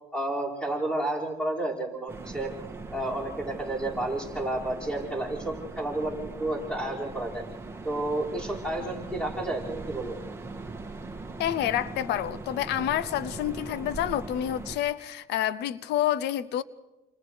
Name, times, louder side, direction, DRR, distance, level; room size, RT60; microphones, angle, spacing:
voice 1, 0.1-2.5 2.9-7.4 7.8-10.2, right 1 dB, 5° left, 5.6 m, -31 dB
sound 1, 2.1-14.8, right 3 dB, 15° right, 2.0 m, -40 dB
voice 2, 11.4-16.6, left 11 dB, 80° left, 0.7 m, -28 dB
29.0 x 28.0 x 3.4 m
cardioid pair, 110°, 17 cm